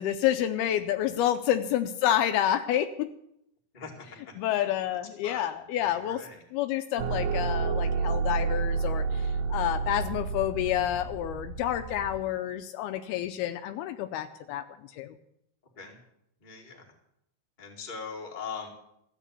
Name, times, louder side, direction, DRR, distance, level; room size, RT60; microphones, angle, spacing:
voice 1, 0.0-3.1 4.4-6.2 6.5-14.7 14.9-15.2, left 11 dB, 80° left, 9 dB, 2.4 m, -29 dB
voice 2, 3.7-4.0 4.5-4.7 5.2-5.5 5.8-6.4 15.7-16.0 16.4-16.8 17.6-18.7, left 5 dB, 20° left, 0 dB, 1.4 m, -41 dB
sound 1, 7.0-12.2, right 5 dB, 70° right, 2.4 m, -30 dB
14.0 x 8.3 x 8.2 m, 0.77 s
omnidirectional pair, 4.7 m